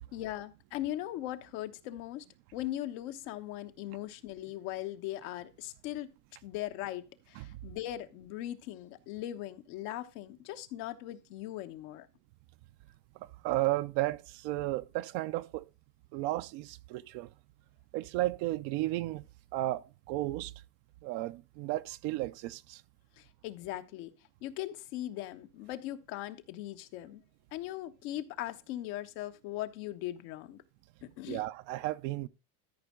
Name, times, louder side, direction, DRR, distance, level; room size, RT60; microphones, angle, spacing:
voice 1, 0.1-2.2 2.5-6.1 6.4-12.1 23.2-24.1 24.4-27.2 27.5-30.6 31.0-31.4, left 14 dB, 70° left, 1.2 m, -39 dB
voice 2, 13.2-15.7 16.1-17.3 17.9-19.3 19.5-20.5 21.0-22.8 31.3-32.3, right 17 dB, 60° right, 0.6 m, -34 dB
13.5 x 5.2 x 3.7 m
supercardioid pair, 115°, 47 cm